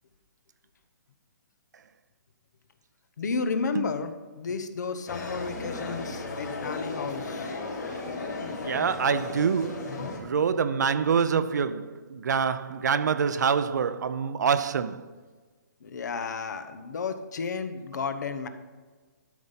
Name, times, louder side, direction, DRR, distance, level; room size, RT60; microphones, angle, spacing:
voice 1, 3.2-4.1 4.4-7.5 7.9-8.0 15.8-18.5, left 5 dB, 70° left, 1.0 m, -32 dB
sound 1, 5.1-10.2, left 3 dB, 85° left, 3.3 m, -35 dB
voice 2, 8.6-15.1, right 6 dB, 70° right, 0.6 m, -26 dB
12.5 x 5.4 x 5.7 m
hypercardioid pair, 160°, 10 cm